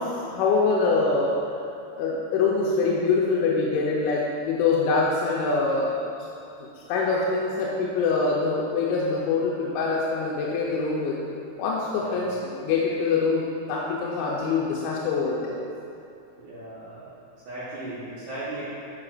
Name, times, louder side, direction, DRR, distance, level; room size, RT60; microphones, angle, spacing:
voice 1, 0.0-1.3 2.0-5.9 6.6-11.2 11.6-15.5, left 4 dB, 85° left, -5 dB, 2.9 m, -24 dB
voice 2, 11.9-12.2 16.4-17.1 17.5-18.6, right 2 dB, 65° right, -12 dB, 2.8 m, -37 dB
13.5 x 5.0 x 2.5 m, 2.6 s
omnidirectional pair, 5.4 m